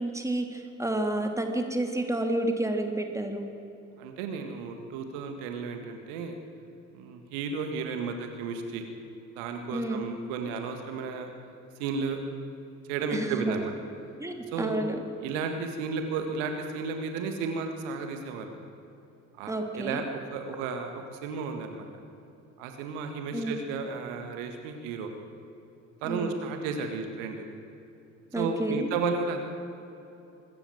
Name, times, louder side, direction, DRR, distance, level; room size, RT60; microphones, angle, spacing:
voice 1, 0.0-3.5 9.7-10.0 13.1-13.5 14.2-15.0 19.5-20.0 23.3-23.5 26.1-26.4 28.3-28.8, right 1 dB, 5° right, 4 dB, 2.9 m, -30 dB
voice 2, 4.0-6.4 6.9-8.9 9.4-11.3 11.8-12.2 12.9-13.7 14.5-14.8 15.2-18.5 19.4-21.9 22.6-25.1 26.0-27.4 28.4-29.4, right 5 dB, 70° right, 5 dB, 1.9 m, -33 dB
24.0 x 14.0 x 7.8 m, 2.8 s
figure-of-eight pair, 50°, 41 cm